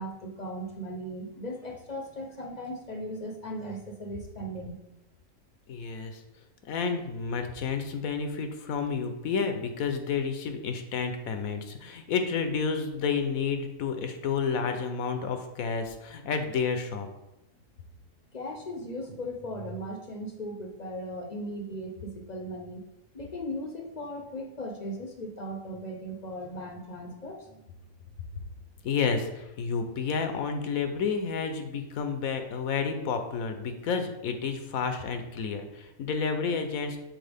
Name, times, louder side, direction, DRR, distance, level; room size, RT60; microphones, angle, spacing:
voice 1, 0.0-4.8 14.6-14.7 18.3-22.8 23.1-27.6, equal, 40° left, 2 dB, 0.6 m, -37 dB
voice 2, 5.7-6.2 6.6-17.1 28.8-37.0, left 5 dB, 85° left, 6 dB, 1.2 m, -30 dB
6.5 x 4.3 x 3.5 m, 0.93 s
omnidirectional pair, 1.4 m